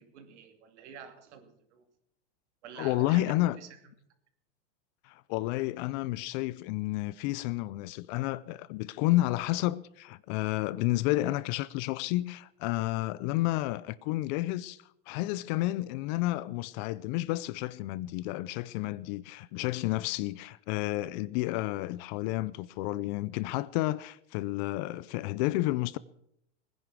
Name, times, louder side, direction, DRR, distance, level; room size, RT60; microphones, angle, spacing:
voice 1, 0.0-1.8 2.6-3.7, right 7 dB, 65° right, 2.8 m, -48 dB
voice 2, 2.8-3.6 5.0-26.0, left 17 dB, 40° left, 0.5 m, -31 dB
19.5 x 10.5 x 6.2 m
supercardioid pair, 135°, 37 cm